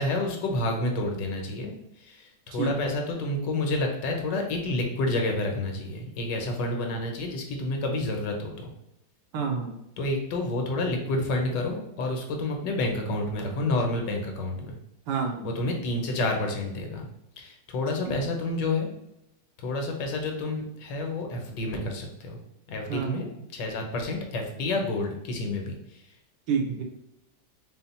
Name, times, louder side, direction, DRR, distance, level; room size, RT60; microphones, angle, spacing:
voice 1, 0.0-8.7 10.0-14.8 15.4-17.1 17.4-18.9 19.6-22.4 22.7-26.0, left 2 dB, 90° left, 2 dB, 1.4 m, -29 dB
voice 2, 2.5-2.9 9.3-9.7 15.1-15.5 18.0-18.3 22.9-23.2 26.5-26.8, right 6 dB, 75° right, 2 dB, 1.3 m, -29 dB
4.2 x 2.1 x 4.1 m, 0.84 s
omnidirectional pair, 1.9 m